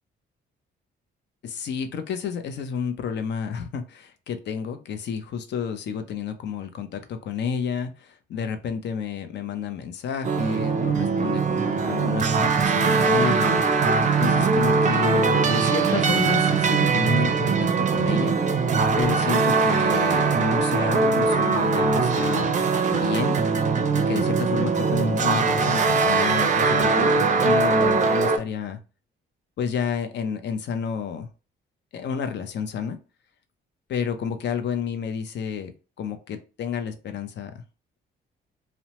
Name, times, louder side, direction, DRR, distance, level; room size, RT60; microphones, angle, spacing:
voice 1, 1.4-18.5 19.0-22.6 22.9-23.4 23.9-28.8 29.6-31.3 31.9-33.0 33.9-35.7 36.0-37.6, left 7 dB, 60° left, 9 dB, 0.6 m, -30 dB
sound 1, 10.2-28.4, right 4 dB, 40° right, 0.4 m, -21 dB
2.8 x 2.1 x 2.9 m, 0.32 s
cardioid pair, 90°, 20 cm